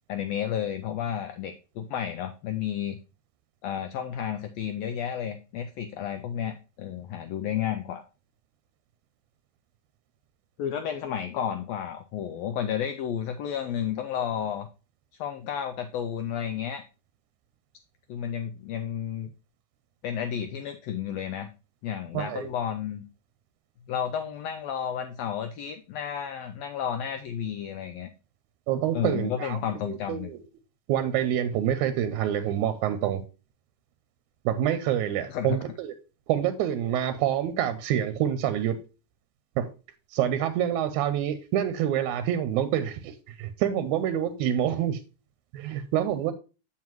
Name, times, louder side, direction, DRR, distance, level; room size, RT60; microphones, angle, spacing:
voice 1, 0.1-3.0 3.6-8.0 10.6-14.7 15.2-16.8 18.1-19.3 20.0-21.5 21.8-23.0 23.9-28.1 28.9-30.3 35.3-35.6, left 9 dB, 80° left, 1.5 m, -32 dB
voice 2, 22.1-22.5 28.7-30.4 30.9-33.2 34.5-35.9 36.3-38.8 39.6-39.7 40.1-45.0 45.5-46.3, right 10 dB, 85° right, 2.0 m, -27 dB
7.5 x 7.3 x 3.0 m
omnidirectional pair, 3.4 m